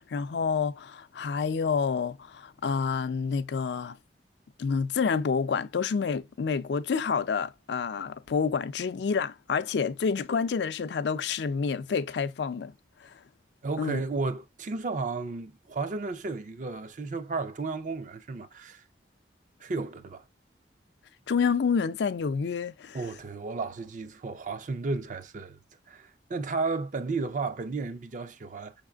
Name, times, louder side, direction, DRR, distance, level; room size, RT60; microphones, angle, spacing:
voice 1, 0.0-4.0 4.6-12.7 13.0-13.1 13.8-14.0 21.3-23.0, left 5 dB, 70° left, 0.4 m, -28 dB
voice 2, 13.6-18.8 19.6-20.2 22.9-25.6 25.9-28.7, right 3 dB, 45° right, 0.4 m, -33 dB
5.6 x 3.5 x 2.3 m
head